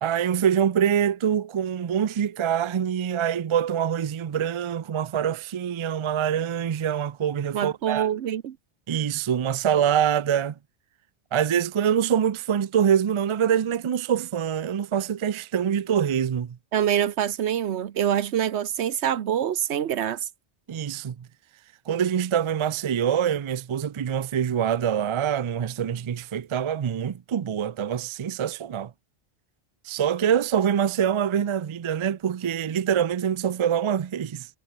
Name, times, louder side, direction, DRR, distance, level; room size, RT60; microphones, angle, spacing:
voice 1, 0.0-8.1 8.9-10.5 11.3-16.6 20.7-21.3 21.9-28.9 29.8-34.5, right 8 dB, 50° right, 0.3 m, -25 dB
voice 2, 7.5-8.6 16.7-20.3, right 9 dB, 80° right, 1.1 m, -25 dB
omnidirectional pair, 1.1 m